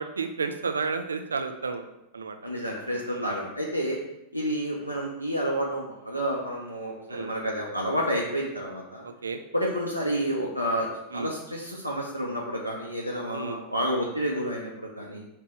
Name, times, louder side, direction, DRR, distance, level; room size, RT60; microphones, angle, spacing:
voice 1, 0.0-1.8 2.1-2.4 3.1-3.3 7.1-7.3 9.2-9.4 11.1-11.3 13.3-13.6, right 4 dB, 75° right, 7 dB, 0.4 m, -31 dB
voice 2, 2.4-4.0 4.3-9.0 9.5-15.2, equal, 90° left, -3 dB, 0.6 m, -30 dB
4.5 x 3.3 x 3.3 m, 0.85 s
figure-of-eight pair, 90°, 0 cm